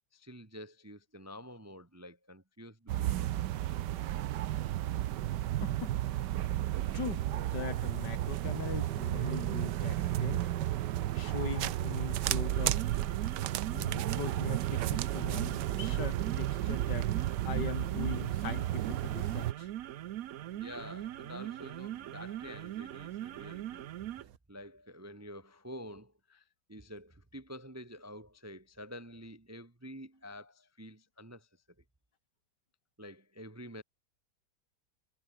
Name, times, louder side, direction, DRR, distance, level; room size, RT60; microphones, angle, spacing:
voice 1, 0.1-3.3 13.2-13.5 20.5-23.9 24.5-31.5 33.0-33.8, equal, 15° right, 0.7 m, -48 dB
sound 1, 2.9-19.5, right 13 dB, 80° right, 1.4 m, -33 dB
voice 2, 5.6-6.0 6.9-10.6 11.1-12.8 13.7-17.1 17.4-19.7, left 6 dB, 75° left, 2.6 m, -41 dB
sound 2, 12.4-24.4, right 12 dB, 65° right, 1.0 m, -41 dB
omnidirectional pair, 1.8 m